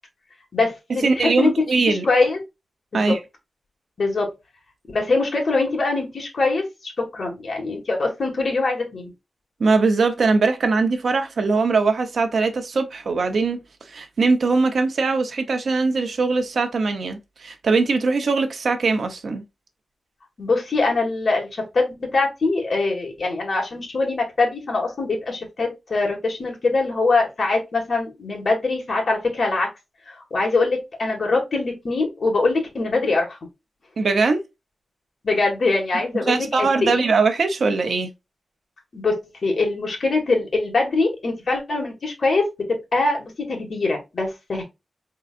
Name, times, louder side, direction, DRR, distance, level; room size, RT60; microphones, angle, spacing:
voice 1, 0.5-1.5 1.9-2.4 2.9-3.2 4.0-4.3 4.9-9.1 20.4-29.7 30.0-33.4 35.2-37.1 38.9-39.2 39.4-44.6, left 3 dB, 45° left, 1.7 m, -23 dB
voice 2, 1.0-2.1 2.9-3.2 9.6-13.6 13.9-19.4 34.0-34.4 36.3-38.1, right 4 dB, 65° right, 0.8 m, -21 dB
4.7 x 3.8 x 2.5 m
wide cardioid pair, 165°, 0 cm